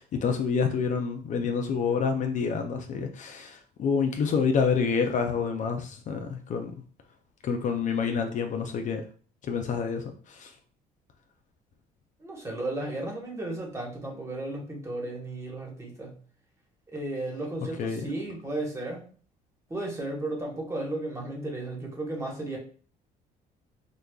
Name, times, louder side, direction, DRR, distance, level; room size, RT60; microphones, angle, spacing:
voice 1, 0.0-6.7 7.4-9.0 9.4-10.5 17.8-18.0, left 5 dB, 50° left, 0.5 m, -28 dB
voice 2, 12.2-16.2 16.9-19.1 19.7-22.6, right 2 dB, 15° right, 1.2 m, -34 dB
4.9 x 2.2 x 2.3 m
cardioid pair, 110°, 17 cm